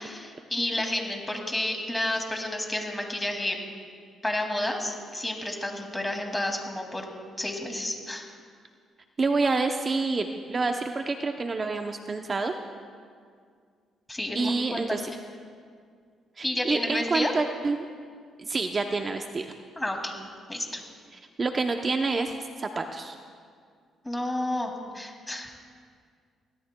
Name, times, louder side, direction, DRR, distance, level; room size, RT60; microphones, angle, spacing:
voice 1, 0.0-3.6 4.2-7.0 7.4-8.3 14.1-14.5 14.9-15.0 16.4-17.3 19.8-20.2 20.5-20.8 24.0-25.5, left 1 dB, 10° left, 2 dB, 2.3 m, -30 dB
voice 2, 9.2-12.5 14.3-15.0 16.4-17.9 18.4-19.5 21.4-23.1, right 3 dB, 35° right, 5 dB, 0.7 m, -28 dB
23.0 x 17.5 x 2.2 m, 2.1 s
cardioid pair, 90°, 0 cm